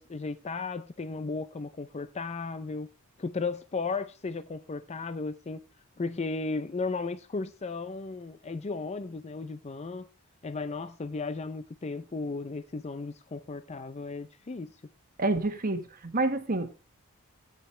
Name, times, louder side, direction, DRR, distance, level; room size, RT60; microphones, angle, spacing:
voice 1, 0.0-2.9 3.2-5.6 6.0-10.1 10.4-14.7, left 3 dB, 30° left, 0.4 m, -35 dB
voice 2, 15.2-16.7, right 2 dB, 40° right, 1.3 m, -28 dB
14.5 x 9.2 x 3.2 m
head